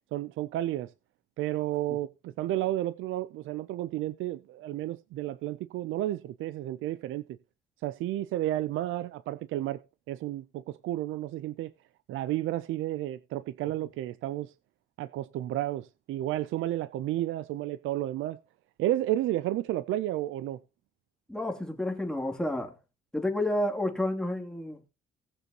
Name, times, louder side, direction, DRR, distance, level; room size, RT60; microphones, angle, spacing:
voice 1, 0.1-0.9 1.4-7.4 7.8-9.8 10.1-11.7 12.1-14.5 15.0-18.4 18.8-20.6, right 14 dB, 85° right, 0.5 m, -32 dB
voice 2, 21.3-22.7 23.1-24.9, left 1 dB, 5° left, 2.8 m, -30 dB
18.0 x 6.8 x 2.9 m
cardioid pair, 90°, 20 cm